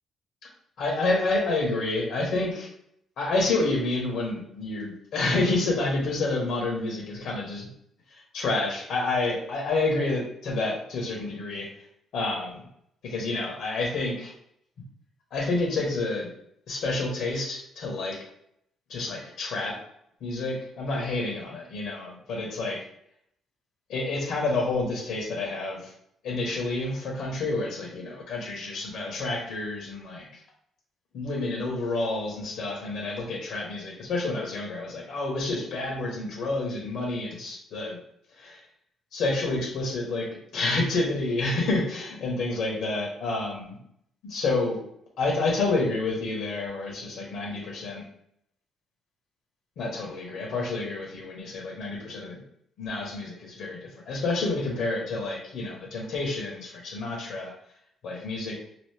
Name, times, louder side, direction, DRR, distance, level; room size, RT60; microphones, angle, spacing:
voice 1, 0.8-2.7 3.2-7.7 8.3-11.7 12.1-12.6 13.0-14.3 15.3-16.3 16.7-18.2 18.9-19.8 20.2-22.8 23.9-25.9 26.2-30.2 31.1-38.0 38.4-38.6 39.1-40.3 40.5-43.8 44.3-44.8 45.2-48.0 49.8-52.4 52.8-57.5 58.0-58.6, left 2 dB, 80° left, -1 dB, 1.2 m, -29 dB
3.0 x 2.5 x 3.4 m, 0.72 s
cardioid pair, 90°, 0 cm